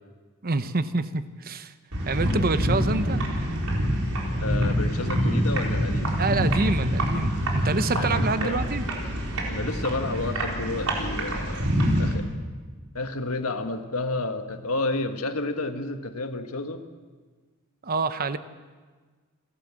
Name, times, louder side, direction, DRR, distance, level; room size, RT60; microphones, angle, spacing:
voice 1, 0.4-1.7 2.0-3.2 6.1-8.8 17.8-18.4, right 3 dB, 45° right, 11 dB, 0.9 m, -27 dB
sound 1, 1.9-12.1, equal, 90° right, 4.3 m, -26 dB
voice 2, 4.4-6.2 7.9-8.7 9.5-11.7 12.0-12.3 12.9-16.8, left 2 dB, 85° left, 7 dB, 1.6 m, -31 dB
29.0 x 12.0 x 7.6 m, 1.4 s
head